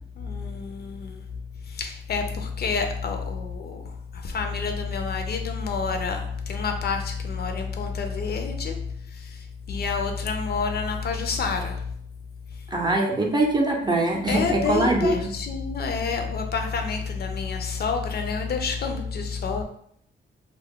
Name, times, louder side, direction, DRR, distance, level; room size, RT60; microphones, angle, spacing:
voice 1, 0.2-1.2 1.7-11.9 14.3-19.6, left 5 dB, 55° left, 5 dB, 0.4 m, -28 dB
voice 2, 12.7-15.3, right 2 dB, 20° right, 0 dB, 0.5 m, -23 dB
2.3 x 2.0 x 3.5 m, 0.68 s
cardioid pair, 85°, 20 cm